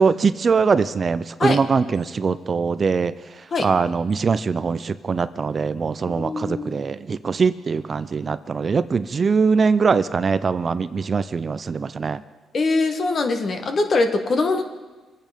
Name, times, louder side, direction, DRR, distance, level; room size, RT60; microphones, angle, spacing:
voice 1, 0.0-3.1 3.6-12.2, right 5 dB, 40° right, 14 dB, 0.5 m, -22 dB
voice 2, 6.1-6.8 12.5-14.7, left 3 dB, 45° left, 6 dB, 1.6 m, -22 dB
24.5 x 9.0 x 5.2 m, 1.2 s
cardioid pair, 90°, 0 cm